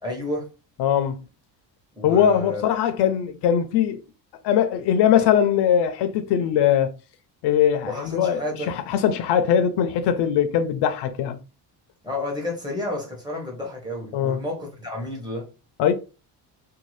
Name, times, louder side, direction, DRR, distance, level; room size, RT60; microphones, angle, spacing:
voice 1, 0.0-0.5 1.9-2.6 7.8-8.7 12.0-15.5, left 1 dB, 10° right, 0.9 m, -31 dB
voice 2, 0.8-1.2 2.0-4.0 4.4-6.9 7.4-11.4 14.1-14.4 15.8-15.9, left 9 dB, 75° left, 0.5 m, -21 dB
2.7 x 2.3 x 3.1 m
cardioid pair, 150°, 42 cm